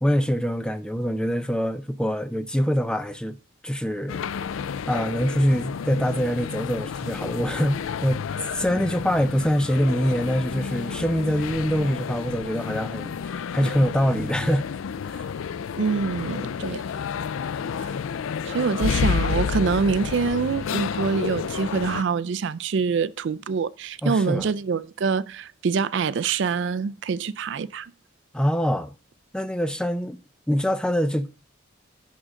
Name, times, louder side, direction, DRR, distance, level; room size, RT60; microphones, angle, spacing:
voice 1, 0.0-3.4 3.6-4.2 4.9-8.2 8.5-14.6 15.0-15.3 24.0-24.5 28.3-28.9 29.3-30.2 30.5-31.3, equal, 5° left, 0.5 m, -24 dB
sound 1, 4.1-22.0, left 6 dB, 85° left, 0.4 m, -30 dB
voice 2, 15.8-16.8 17.8-17.9 18.5-27.9, right 5 dB, 60° right, 0.4 m, -25 dB
11.0 x 3.8 x 6.3 m
head